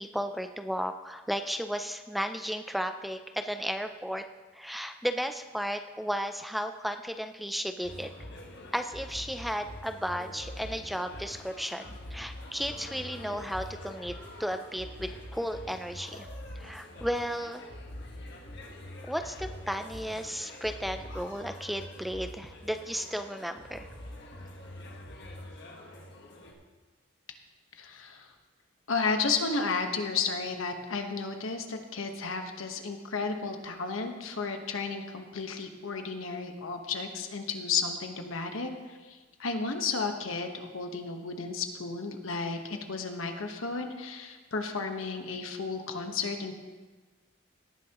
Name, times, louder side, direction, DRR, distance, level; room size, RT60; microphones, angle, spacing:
voice 1, 0.0-4.3 4.5-8.1 8.7-16.3 16.6-17.7 19.0-23.9, equal, ahead, 7 dB, 0.4 m, -34 dB
sound 1, 7.8-26.5, left 1 dB, 55° left, 1.6 m, -44 dB
voice 2, 27.7-28.3 28.9-46.5, left 4 dB, 85° left, 5 dB, 1.2 m, -33 dB
18.0 x 10.0 x 3.0 m, 1.3 s
head